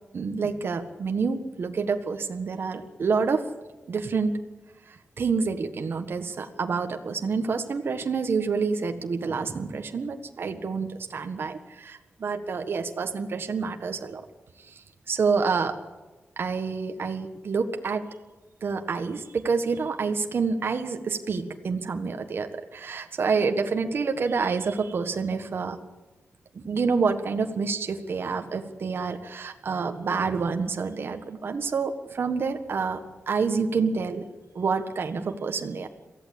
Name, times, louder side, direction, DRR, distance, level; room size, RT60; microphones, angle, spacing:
voice 1, 0.1-3.4 3.9-4.4 5.2-14.2 15.1-15.8 16.4-18.0 18.6-25.8 26.5-33.0 33.3-34.2 34.5-35.9, right 5 dB, 65° right, 5 dB, 1.6 m, -28 dB
23.0 x 15.5 x 8.6 m, 1.2 s
wide cardioid pair, 120°, 4 cm